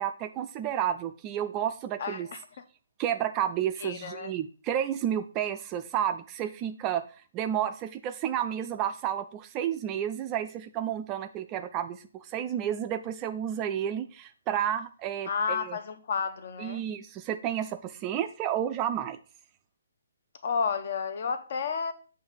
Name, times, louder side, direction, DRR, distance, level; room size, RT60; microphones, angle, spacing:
voice 1, 0.0-2.3 3.0-7.0 7.3-15.8 16.6-19.2, right 10 dB, 20° right, 0.3 m, -31 dB
voice 2, 2.0-2.5 3.8-4.3 15.3-16.8 20.4-21.9, left 6 dB, 45° left, 0.7 m, -31 dB
7.9 x 3.3 x 5.6 m
figure-of-eight pair, 135°, 0 cm